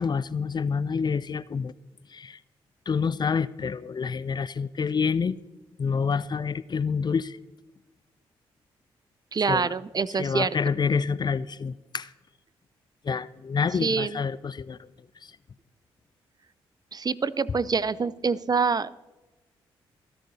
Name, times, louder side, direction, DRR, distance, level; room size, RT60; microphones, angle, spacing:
voice 1, 0.0-1.7 2.1-2.4 2.9-5.4 5.8-7.4 9.5-9.7 10.2-12.1 13.0-14.8, left 5 dB, 35° left, 18 dB, 0.5 m, -27 dB
voice 2, 9.3-10.6 13.8-14.2 16.9-18.9, right 5 dB, 35° right, 19 dB, 0.5 m, -26 dB
28.0 x 10.5 x 2.8 m, 1.1 s
hypercardioid pair, 45°, 12 cm